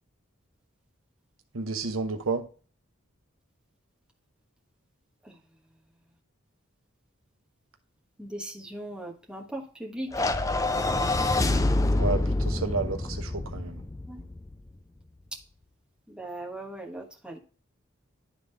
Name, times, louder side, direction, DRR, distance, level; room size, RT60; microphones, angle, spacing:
voice 1, 1.5-2.5 12.0-13.8, right 4 dB, 80° right, 0.9 m, -31 dB
voice 2, 8.2-10.2 14.1-14.2 15.3-15.4 16.1-17.4, right 1 dB, 5° right, 1.3 m, -39 dB
sound 1, 10.1-14.5, left 2 dB, 15° left, 0.4 m, -26 dB
11.0 x 3.8 x 3.3 m
head